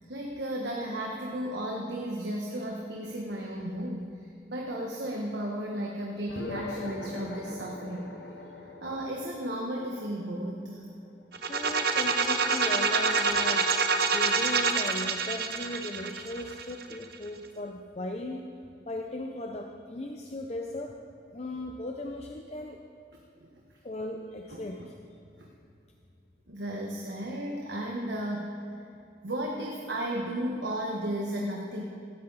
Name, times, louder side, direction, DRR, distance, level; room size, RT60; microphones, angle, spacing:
voice 1, 0.1-8.1 8.6-10.9 23.1-23.5 24.5-24.9 25.4-25.5 26.5-28.5 29.2-31.8, right 1 dB, 80° right, -1 dB, 1.4 m, -34 dB
sound 1, 6.3-11.1, left 2 dB, 70° left, 1.2 m, -41 dB
sound 2, 11.3-17.1, right 4 dB, 60° right, 0.9 m, -27 dB
voice 2, 11.5-13.7 14.1-18.5 18.9-21.0 21.3-22.8 23.8-24.9, left 1 dB, 35° left, 2 dB, 0.7 m, -37 dB
17.5 x 13.5 x 4.1 m, 2.5 s
head